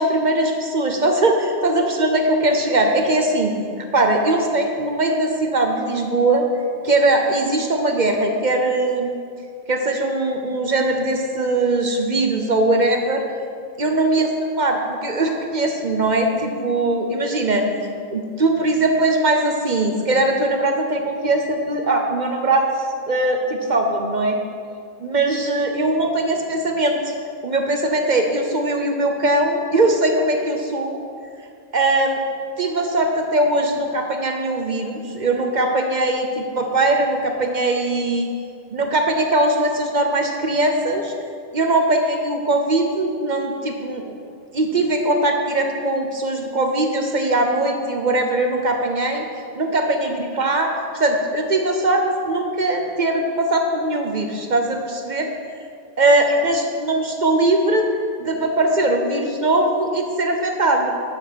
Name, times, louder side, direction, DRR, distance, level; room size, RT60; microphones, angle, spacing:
voice 1, 0.0-3.5 3.9-6.4 6.8-9.1 9.7-13.2 13.8-14.3 14.6-17.7 18.1-22.7 23.1-24.4 25.0-27.1 27.4-31.0 31.7-32.2 32.6-38.3 38.7-41.1 41.5-44.0 44.5-49.2 49.6-55.3 56.0-57.9 58.2-60.9, right 2 dB, 40° right, 3 dB, 0.9 m, -20 dB
8.6 x 6.1 x 6.2 m, 2.2 s
omnidirectional pair, 1.3 m